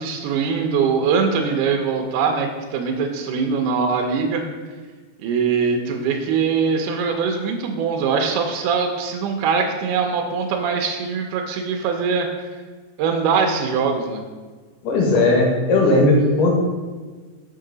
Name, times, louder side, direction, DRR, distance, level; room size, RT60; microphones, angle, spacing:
voice 1, 0.0-4.4 5.2-12.3 13.0-14.2, right 5 dB, 80° right, 2 dB, 2.1 m, -22 dB
voice 2, 14.8-16.5, left 2 dB, 85° left, -1 dB, 2.7 m, -17 dB
5.5 x 5.4 x 3.8 m, 1.4 s
omnidirectional pair, 3.7 m